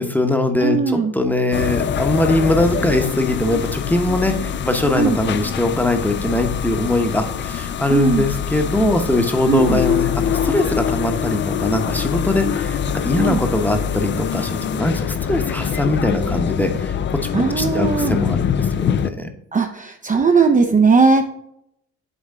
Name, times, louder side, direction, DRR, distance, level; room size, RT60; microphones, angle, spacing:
voice 1, 0.0-17.0 17.3-19.3, left 1 dB, 5° left, 5 dB, 0.9 m, -21 dB
voice 2, 0.6-1.1 5.0-5.2 7.9-8.3 9.5-9.8 13.2-13.4 17.3-18.2 19.5-21.2, right 4 dB, 25° right, 4 dB, 0.5 m, -17 dB
sound 1, 1.5-19.1, left 8 dB, 40° left, 0.4 m, -24 dB
8.9 x 3.6 x 3.7 m, 0.76 s
cardioid pair, 90°, 30 cm